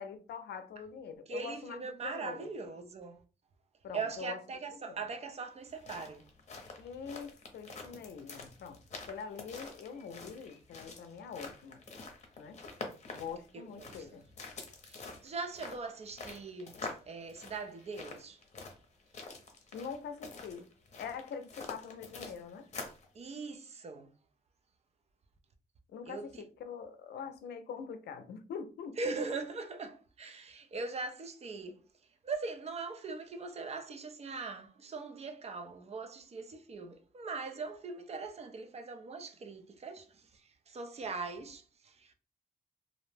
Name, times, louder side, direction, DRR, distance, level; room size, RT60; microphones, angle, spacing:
voice 1, 0.0-2.5 3.8-4.4 4.8-4.9 6.8-11.8 12.4-12.6 13.1-14.2 19.7-20.7 21.0-22.7 25.9-26.3 26.6-29.1, left 6 dB, 85° left, 0.5 m, -44 dB
voice 2, 1.3-3.2 3.9-6.3 13.8-14.2 14.9-18.4 23.1-24.1 26.1-26.4 29.0-31.8 32.2-42.1, right 4 dB, 40° right, 0.4 m, -41 dB
sound 1, 5.6-23.1, left 3 dB, 45° left, 0.7 m, -47 dB
2.5 x 2.0 x 3.1 m
wide cardioid pair, 120°, 17 cm